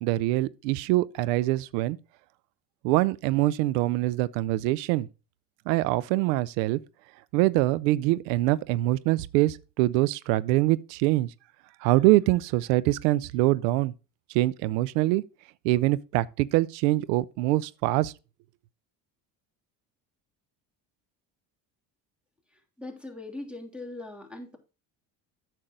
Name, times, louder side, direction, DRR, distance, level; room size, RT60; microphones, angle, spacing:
voice 1, 0.0-2.0 2.8-5.1 5.7-6.8 7.3-11.3 11.8-13.9 14.3-15.2 15.6-18.1, right 17 dB, 80° right, 0.6 m, -24 dB
voice 2, 22.8-24.6, left 2 dB, ahead, 2.8 m, -40 dB
8.9 x 6.5 x 3.6 m
hypercardioid pair, 65°, 48 cm